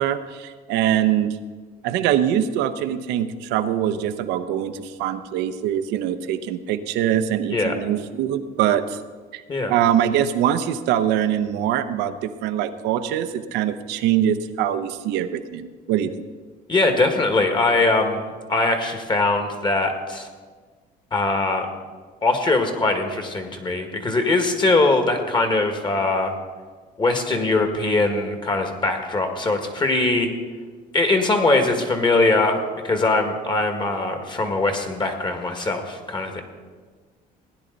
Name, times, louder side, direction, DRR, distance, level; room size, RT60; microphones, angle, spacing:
voice 1, 0.0-1.4 1.8-9.0 9.3-9.4 9.7-16.1, right 10 dB, 85° right, 10 dB, 0.8 m, -23 dB
voice 2, 16.7-20.3 21.1-21.7 22.2-26.3 27.0-30.3 30.9-32.6 32.8-36.4, left 2 dB, 30° left, 5 dB, 1.8 m, -21 dB
17.0 x 10.0 x 4.0 m, 1.5 s
cardioid pair, 110°, 17 cm